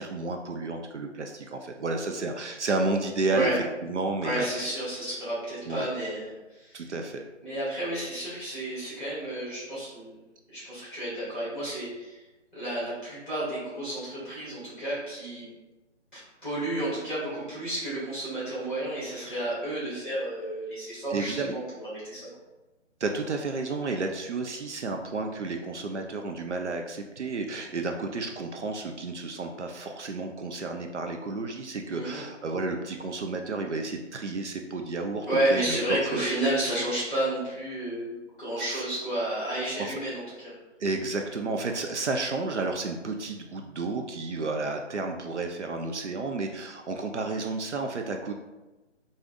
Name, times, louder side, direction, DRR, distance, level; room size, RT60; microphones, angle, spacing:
voice 1, 0.0-4.7 5.7-5.9 6.7-7.2 21.1-21.5 23.0-36.3 38.6-38.8 39.8-40.0 40.8-48.3, right 3 dB, 70° right, 4 dB, 0.5 m, -31 dB
voice 2, 4.2-6.9 7.4-10.1 10.5-12.2 12.5-15.5 16.1-22.3 31.9-32.2 35.3-40.5, right 1 dB, 5° right, -10 dB, 1.1 m, -31 dB
4.8 x 2.6 x 2.4 m, 1.1 s
figure-of-eight pair, 150°, 36 cm